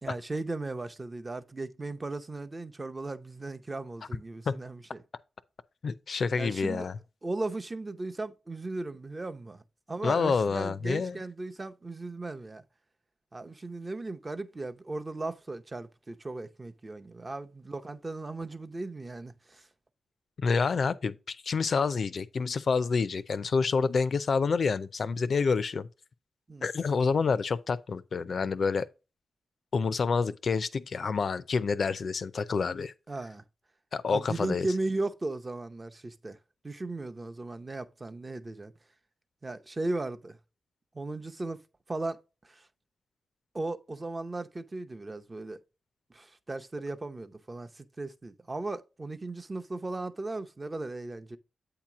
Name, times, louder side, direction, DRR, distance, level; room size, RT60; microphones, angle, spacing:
voice 1, 0.0-5.0 6.4-6.9 7.2-9.6 9.9-12.6 13.3-19.7 26.5-26.7 33.1-33.4 34.1-36.4 36.6-38.7 39.4-40.4 40.9-41.6 41.9-42.7 43.5-45.6 46.1-51.4, right 2 dB, 30° right, 0.7 m, -36 dB
voice 2, 5.8-6.9 10.0-11.2 20.4-25.9 26.6-28.8 29.7-32.9 33.9-34.7, left 5 dB, 60° left, 0.5 m, -28 dB
8.3 x 2.9 x 5.9 m
cardioid pair, 70°, 0 cm